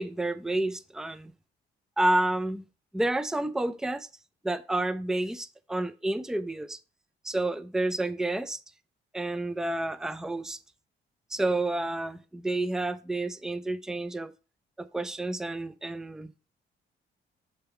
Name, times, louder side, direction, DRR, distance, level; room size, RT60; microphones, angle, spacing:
voice 1, 0.0-1.3 2.0-2.6 2.9-4.1 4.4-6.8 7.2-8.6 9.1-10.6 11.3-14.3 14.8-16.3, right 2 dB, 5° right, 0.5 m, -30 dB
7.9 x 3.5 x 5.7 m
cardioid pair, 90°, 20 cm